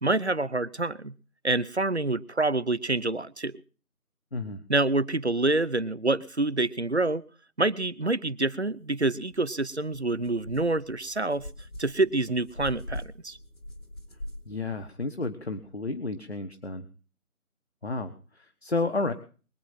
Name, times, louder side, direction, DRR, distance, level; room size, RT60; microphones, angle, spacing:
voice 1, 0.0-1.1 1.4-3.6 4.7-7.2 7.6-11.5 11.8-13.4, right 2 dB, 50° right, 18 dB, 0.8 m, -27 dB
voice 2, 4.3-4.6 14.5-16.9 17.8-19.1, left 3 dB, 45° left, 9 dB, 1.3 m, -31 dB
sound 1, 9.3-9.4 9.9-14.9, left 1 dB, 65° left, 4.4 m, -42 dB
22.5 x 8.8 x 5.8 m, 0.39 s
figure-of-eight pair, 170°, 44 cm